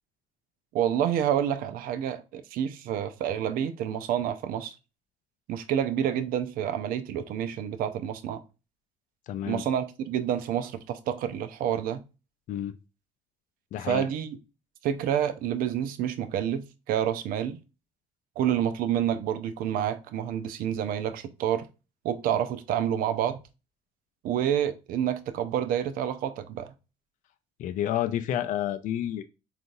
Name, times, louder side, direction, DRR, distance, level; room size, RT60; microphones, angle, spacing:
voice 1, 0.7-4.7 5.5-8.4 9.4-12.0 13.9-14.4 14.8-17.6 18.4-21.6 22.0-23.4 24.2-26.7, right 10 dB, 65° right, 0.5 m, -28 dB
voice 2, 9.3-9.6 12.5-12.7 13.7-14.1 27.6-29.2, left 11 dB, 55° left, 0.4 m, -29 dB
3.8 x 2.4 x 2.5 m
hypercardioid pair, 65°, 16 cm